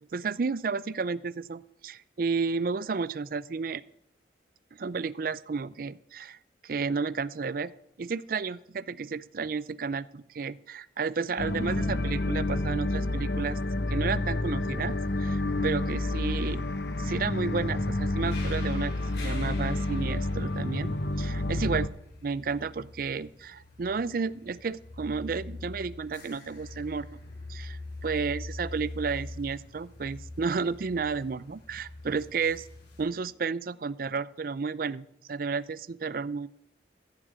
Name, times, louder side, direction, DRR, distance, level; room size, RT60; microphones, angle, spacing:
voice 1, 0.1-3.8 4.8-6.4 6.6-7.7 8.0-13.6 13.9-14.9 15.2-16.7 17.0-21.9 22.2-27.1 27.5-32.7 33.0-36.5, right 5 dB, 50° right, 18 dB, 0.4 m, -32 dB
sound 1, 11.4-21.9, left 2 dB, 65° left, 0.9 m, -29 dB
sound 2, 18.2-33.0, left 2 dB, 85° left, 5.7 m, -44 dB
14.5 x 7.4 x 8.0 m, 0.78 s
head